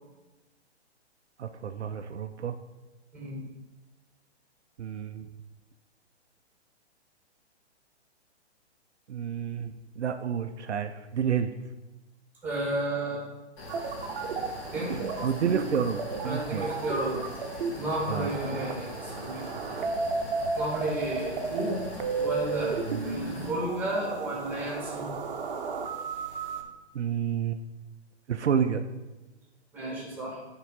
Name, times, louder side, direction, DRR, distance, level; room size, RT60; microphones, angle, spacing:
voice 1, 1.4-2.6 4.8-5.3 9.1-11.5 14.9-16.7 18.1-18.6 22.9-23.1 26.9-27.6 28.3-28.8, right 7 dB, 75° right, 8 dB, 0.5 m, -30 dB
voice 2, 12.4-13.2 14.7-15.0 16.2-17.2 17.7-19.5 20.5-21.8 22.1-25.1 29.7-30.4, right 1 dB, 5° right, -4 dB, 2.2 m, -32 dB
sound 1, 13.6-23.5, left 1 dB, 30° left, 1.4 m, -42 dB
sound 2, 13.7-26.6, right 4 dB, 50° right, 0.8 m, -34 dB
8.1 x 3.9 x 4.0 m, 1.1 s
figure-of-eight pair, 120°, 34 cm